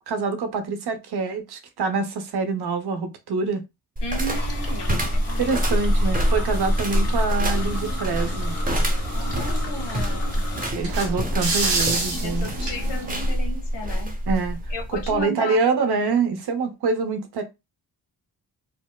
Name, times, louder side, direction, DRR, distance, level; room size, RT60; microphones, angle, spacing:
voice 1, 0.0-3.6 5.4-8.6 10.8-12.5 14.3-14.6 14.9-17.4, right 4 dB, 70° right, 0.8 m, -25 dB
voice 2, 4.0-5.7 6.3-6.4 9.1-10.4 10.9-11.0 12.1-14.1 14.7-15.6, left 1 dB, 80° left, 1.1 m, -35 dB
sound 1, 4.0-15.2, equal, 20° right, 0.9 m, -25 dB
sound 2, 4.3-10.7, left 2 dB, 35° left, 1.3 m, -36 dB
sound 3, 7.6-13.3, right 2 dB, 90° right, 1.1 m, -30 dB
4.4 x 2.0 x 2.2 m
cardioid pair, 95°, 41 cm